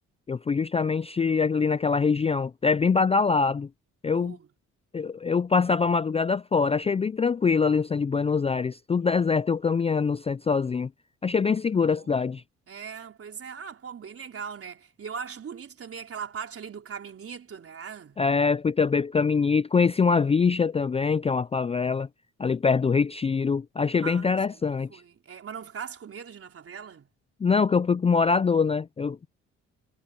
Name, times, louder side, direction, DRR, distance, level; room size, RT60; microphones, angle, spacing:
voice 1, 0.3-3.7 4.0-4.4 4.9-10.9 11.2-12.4 18.2-22.1 22.4-24.9 27.4-29.3, left 5 dB, 20° left, 0.4 m, -24 dB
voice 2, 4.1-4.5 11.7-12.4 12.7-18.2 24.0-27.1, right 6 dB, 50° right, 4.3 m, -40 dB
cardioid pair, 90°, 30 cm